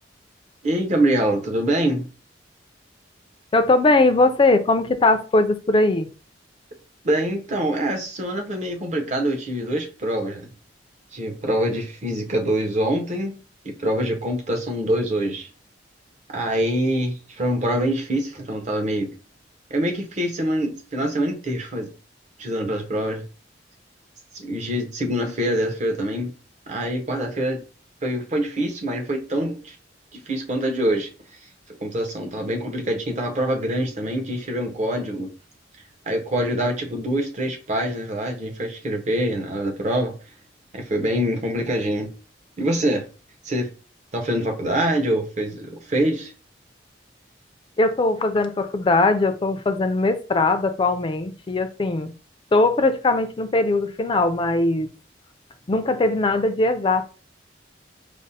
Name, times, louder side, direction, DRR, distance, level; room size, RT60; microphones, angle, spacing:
voice 1, 0.6-2.1 7.0-10.5 11.1-13.4 13.6-15.5 16.3-19.1 19.7-21.9 22.4-23.2 24.3-26.3 26.7-27.6 28.0-29.8 30.3-31.1 31.8-35.3 36.1-40.1 40.7-42.1 42.6-43.0 43.4-43.7 44.1-46.3, right 1 dB, 40° right, 0.6 m, -25 dB
voice 2, 3.5-6.1 47.8-52.1 52.5-54.9 55.7-57.1, left 2 dB, 25° left, 0.3 m, -20 dB
5.1 x 2.0 x 2.7 m
head